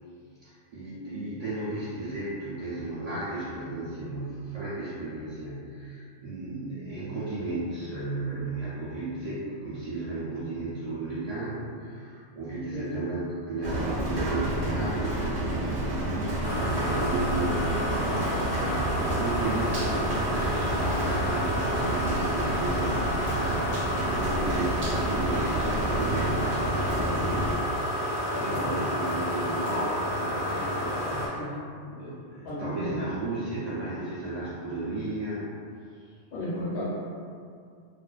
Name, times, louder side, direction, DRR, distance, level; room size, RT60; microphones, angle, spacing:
voice 1, 0.4-16.1 16.6-31.4 31.9-35.5 35.9-36.0, right 2 dB, 60° right, -11 dB, 0.4 m, -34 dB
Rain, 13.6-27.5, right 1 dB, 75° right, 1.0 m, -30 dB
sound 1, 16.4-31.3, equal, 30° left, 0.4 m, -30 dB
voice 2, 28.3-28.8 31.3-31.6 32.4-33.0 36.3-36.8, equal, 65° left, -9 dB, 0.7 m, -34 dB
2.4 x 2.2 x 2.3 m, 2.2 s
omnidirectional pair, 1.3 m